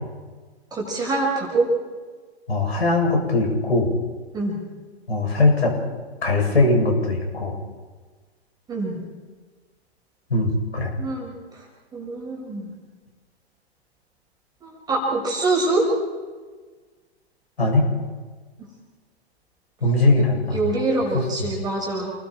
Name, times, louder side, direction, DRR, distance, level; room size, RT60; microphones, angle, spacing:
voice 1, 0.7-1.7 4.3-4.6 8.7-9.0 11.0-11.3 11.9-12.7 14.6-15.8 20.5-22.1, right 2 dB, 10° right, -2 dB, 5.7 m, -24 dB
voice 2, 2.5-3.9 5.1-5.7 6.2-7.6 10.3-10.9 17.6-17.9 19.8-20.7 21.1-21.5, left 2 dB, 75° left, 0 dB, 7.3 m, -20 dB
29.5 x 20.0 x 4.4 m, 1.4 s
figure-of-eight pair, 115°, 32 cm